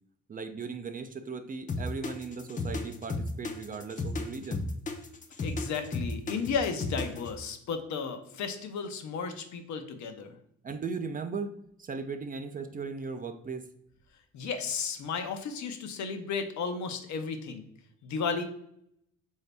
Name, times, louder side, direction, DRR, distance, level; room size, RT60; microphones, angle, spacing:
voice 1, 0.3-4.7 10.6-13.7, right 4 dB, 30° right, 8 dB, 0.4 m, -37 dB
sound 1, 1.7-7.3, left 3 dB, 25° left, 0.5 m, -33 dB
voice 2, 5.4-10.4 14.3-17.6 18.0-18.4, left 5 dB, 70° left, 7 dB, 0.7 m, -34 dB
3.9 x 2.7 x 3.3 m, 0.72 s
cardioid pair, 90°, 30 cm